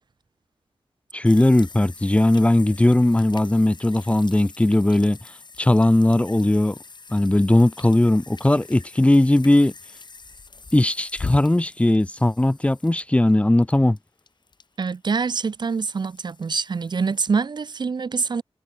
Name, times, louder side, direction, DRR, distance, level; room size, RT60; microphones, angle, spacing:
voice 1, 1.1-5.2 5.6-6.7 7.1-9.7 10.7-14.0, left 1 dB, 10° left, 0.4 m, -18 dB
sound 1, 1.2-17.3, left 4 dB, 45° left, 1.3 m, -42 dB
voice 2, 14.8-18.4, right 5 dB, 45° right, 0.4 m, -25 dB
wide cardioid pair, 70°, 10 cm